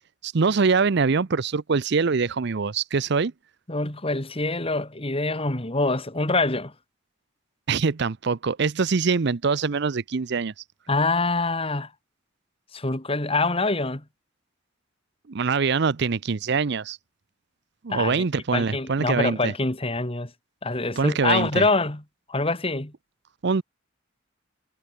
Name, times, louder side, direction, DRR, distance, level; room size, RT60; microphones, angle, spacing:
voice 1, 0.2-3.3 7.7-10.5 15.3-17.0 17.8-19.5 21.0-21.6 23.4-23.6, right 5 dB, 60° right, 0.6 m, -23 dB
voice 2, 3.7-6.7 10.9-11.9 12.7-14.0 17.9-18.2 18.5-20.3 20.6-22.0 22.3-22.9, left 3 dB, 30° left, 2.5 m, -25 dB
head